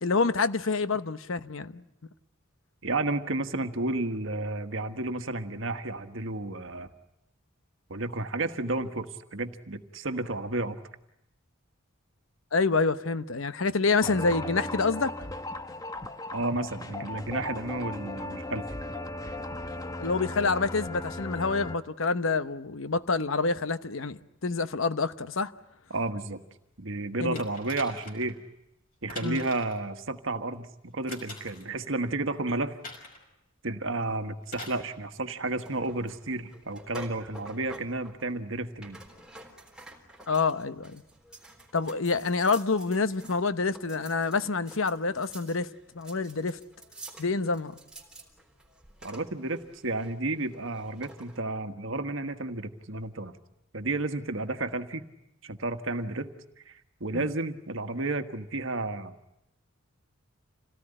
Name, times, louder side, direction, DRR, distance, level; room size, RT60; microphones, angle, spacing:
voice 1, 0.0-1.8 12.5-15.1 20.0-25.5 27.2-27.4 29.2-29.4 40.3-41.0 41.7-45.7 45.9-46.6 47.2-47.8 57.1-57.3, left 4 dB, 75° left, 1.0 m, -27 dB
voice 2, 2.8-6.9 7.9-10.8 16.3-18.6 25.9-26.4 26.8-28.4 29.0-32.8 33.6-39.0 49.0-53.3 53.7-55.0 55.4-56.3 56.7-59.1, right 2 dB, 65° right, 1.5 m, -32 dB
sound 1, 14.0-21.8, left 2 dB, 15° left, 0.9 m, -37 dB
sound 2, 27.4-28.3 29.1-29.8 31.1-31.7 32.8-33.2 34.5-34.8 35.9-36.0, left 2 dB, 40° left, 5.4 m, -43 dB
sound 3, 35.4-51.4, right 1 dB, 5° right, 3.7 m, -50 dB
27.5 x 18.0 x 10.0 m
head